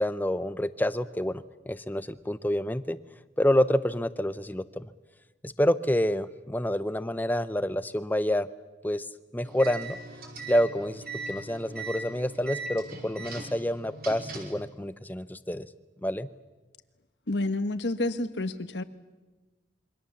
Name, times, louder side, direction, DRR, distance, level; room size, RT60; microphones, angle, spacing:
voice 1, 0.0-3.0 3.4-4.9 5.4-8.5 8.8-9.1 9.3-10.0 10.5-15.7 16.0-16.3, equal, 10° left, 13 dB, 0.7 m, -28 dB
sound 1, 9.4-14.6, right 3 dB, 55° right, 5.2 m, -40 dB
voice 2, 17.3-18.8, left 2 dB, 75° left, 11 dB, 1.3 m, -29 dB
27.0 x 24.0 x 7.2 m, 1.2 s
head